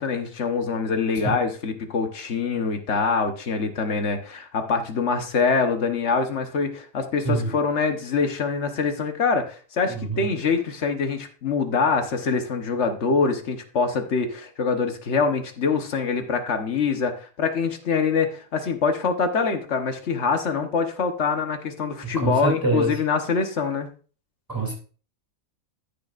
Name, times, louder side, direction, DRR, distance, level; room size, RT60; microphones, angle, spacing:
voice 1, 0.0-23.9, left 5 dB, 55° left, 6 dB, 1.4 m, -24 dB
voice 2, 9.9-10.3 22.1-22.9 24.5-24.7, right 2 dB, 15° right, 0 dB, 2.8 m, -25 dB
14.0 x 6.7 x 2.5 m, 0.39 s
omnidirectional pair, 1.5 m